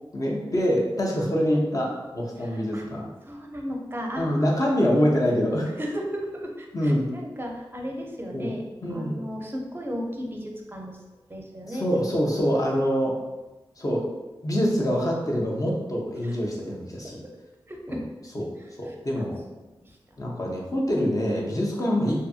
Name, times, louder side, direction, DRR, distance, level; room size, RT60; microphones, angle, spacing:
voice 1, 0.1-3.1 4.2-5.7 6.7-7.1 8.3-8.5 8.8-9.3 11.7-13.2 13.8-14.0 14.4-17.2 17.9-18.0 18.3-18.5 18.8-19.4 20.2-22.2, equal, 40° left, -3 dB, 0.7 m, -25 dB
voice 2, 2.4-2.8 3.2-4.7 5.8-8.6 8.9-11.0 11.3-11.9 16.2-16.4 17.0-17.3 17.7-18.0 18.6-18.9 19.8-20.0, equal, 25° right, 0 dB, 0.5 m, -35 dB
2.6 x 2.5 x 2.4 m, 1.1 s
cardioid pair, 40°, 10 cm